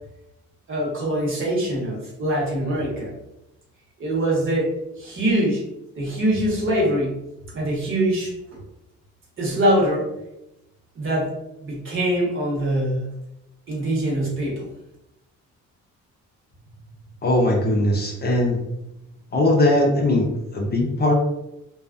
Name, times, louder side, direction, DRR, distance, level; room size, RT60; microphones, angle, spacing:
voice 1, 0.7-3.1 4.0-5.6 6.0-7.1 7.5-8.6 9.4-10.1 10.9-11.3 11.6-13.1 13.7-14.6, right 1 dB, 40° right, -4 dB, 1.1 m, -23 dB
voice 2, 17.2-18.6 19.3-21.1, left 1 dB, 35° left, -1 dB, 0.5 m, -20 dB
2.3 x 2.2 x 2.4 m, 0.89 s
cardioid pair, 90°, 30 cm